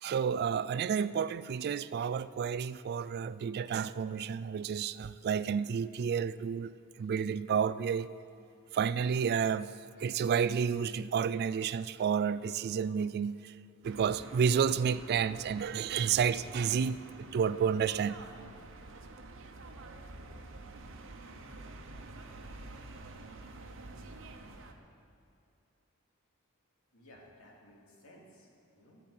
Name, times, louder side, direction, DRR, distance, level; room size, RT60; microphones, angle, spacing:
voice 1, 0.0-6.7 7.0-8.1 8.7-9.7 10.0-13.5 13.8-18.2, right 7 dB, 50° right, 16 dB, 0.3 m, -30 dB
sound 1, 13.8-24.7, right 2 dB, 65° right, 1.0 m, -48 dB
voice 2, 26.9-29.1, left 1 dB, 80° left, -2 dB, 2.5 m, -57 dB
15.0 x 6.0 x 8.5 m, 2.6 s
head